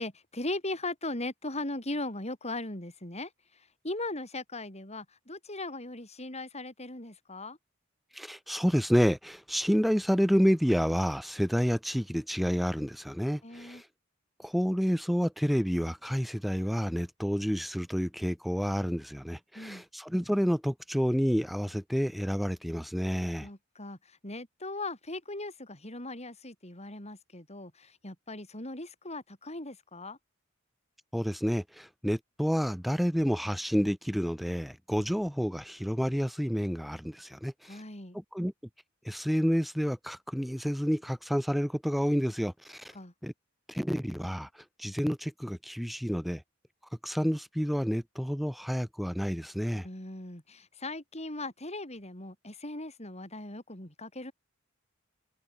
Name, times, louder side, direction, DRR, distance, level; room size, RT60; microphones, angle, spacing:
voice 1, 0.0-7.6 13.4-13.8 19.5-19.8 23.4-30.2 37.7-38.2 42.9-43.1 49.8-54.3, left 2 dB, 35° left, 7.9 m, -39 dB
voice 2, 8.1-13.8 14.4-23.5 31.1-37.8 38.1-38.5 39.0-42.9 43.2-43.3 43.7-44.5 44.8-46.4 47.0-49.8, equal, ahead, 3.2 m, -29 dB
head